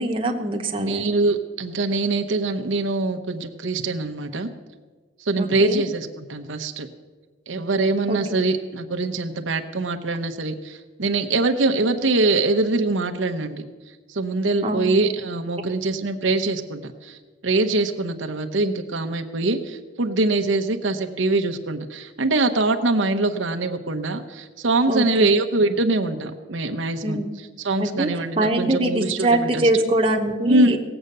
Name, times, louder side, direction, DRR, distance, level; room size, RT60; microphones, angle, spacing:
voice 1, 0.0-1.0 5.4-5.8 8.1-8.2 14.6-14.9 24.9-25.3 27.0-27.3 27.8-28.1 28.3-30.8, right 1 dB, 30° right, 2 dB, 1.0 m, -23 dB
voice 2, 0.8-4.5 5.2-6.9 7.5-13.6 14.1-27.2 27.6-29.8 30.5-30.8, right 2 dB, 85° right, 4 dB, 0.9 m, -23 dB
18.0 x 7.9 x 6.7 m, 1.4 s
head